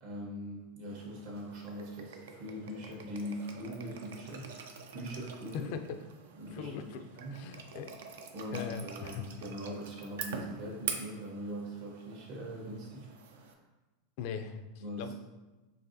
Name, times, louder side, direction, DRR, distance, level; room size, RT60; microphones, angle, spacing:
voice 1, 0.0-5.7 6.4-6.8 7.1-7.4 8.3-13.1 13.4-13.5 14.8-15.1, equal, 65° right, -2 dB, 1.3 m, -41 dB
sound 1, 0.9-13.5, right 5 dB, 85° right, 0.5 m, -46 dB
voice 2, 6.5-7.9 8.5-9.2 14.2-14.6 15.0-15.1, left 7 dB, 60° left, 8 dB, 0.3 m, -40 dB
4.7 x 3.0 x 2.7 m, 1.1 s
hypercardioid pair, 115°, 0 cm